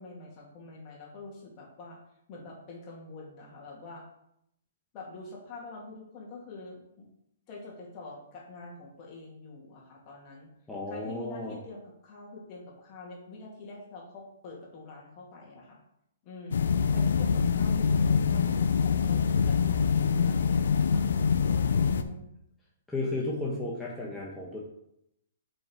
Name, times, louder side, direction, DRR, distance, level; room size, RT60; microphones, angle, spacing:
voice 1, 0.0-2.0 2.3-4.0 4.9-7.1 7.5-10.5 10.9-15.8 16.2-21.0 21.6-22.3, left 3 dB, 35° left, -3 dB, 2.5 m, -46 dB
voice 2, 10.7-11.5 22.9-24.6, left 2 dB, 5° left, -5 dB, 1.3 m, -33 dB
sound 1, 16.5-22.0, left 6 dB, 70° left, 0.6 m, -25 dB
5.5 x 5.4 x 4.6 m, 0.78 s
hypercardioid pair, 130°, 0 cm